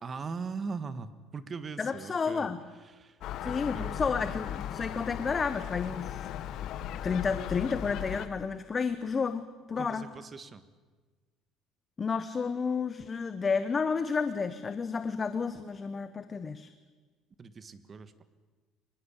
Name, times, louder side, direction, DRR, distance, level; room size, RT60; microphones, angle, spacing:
voice 1, 0.0-4.4 9.7-10.6 17.4-18.2, right 4 dB, 30° right, 13 dB, 1.5 m, -41 dB
voice 2, 1.8-2.6 3.4-6.3 7.0-10.1 12.0-16.7, left 5 dB, 25° left, 11 dB, 1.0 m, -31 dB
Gull seagull, 3.2-8.3, left 11 dB, 60° left, 1.2 m, -37 dB
25.0 x 20.5 x 8.4 m, 1.4 s
cardioid pair, 130°, 0 cm